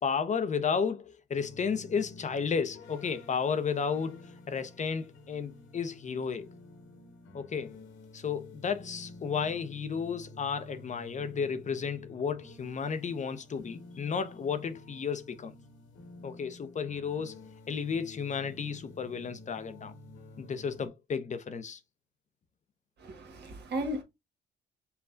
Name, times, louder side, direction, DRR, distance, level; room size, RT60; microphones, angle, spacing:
voice 1, 0.0-6.5 7.3-7.8 8.1-15.5 16.2-17.4 17.7-19.9 20.4-21.8, left 6 dB, 40° left, 0.7 m, -33 dB
sound 1, 1.3-20.9, left 2 dB, 80° left, 1.6 m, -51 dB
voice 2, 23.0-24.0, right 1 dB, 60° right, 1.5 m, -35 dB
5.6 x 2.3 x 3.8 m
cardioid pair, 85°, 20 cm